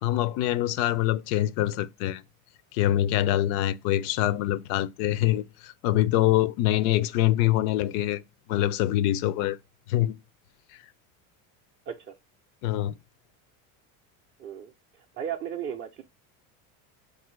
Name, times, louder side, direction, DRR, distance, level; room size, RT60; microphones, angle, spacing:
voice 1, 0.0-2.2 2.7-8.2 8.5-9.6 9.9-10.2 12.6-12.9, left 14 dB, 70° left, 0.5 m, -24 dB
voice 2, 14.4-16.0, right 8 dB, 30° right, 0.4 m, -36 dB
4.0 x 2.6 x 3.0 m
supercardioid pair, 130°, 42 cm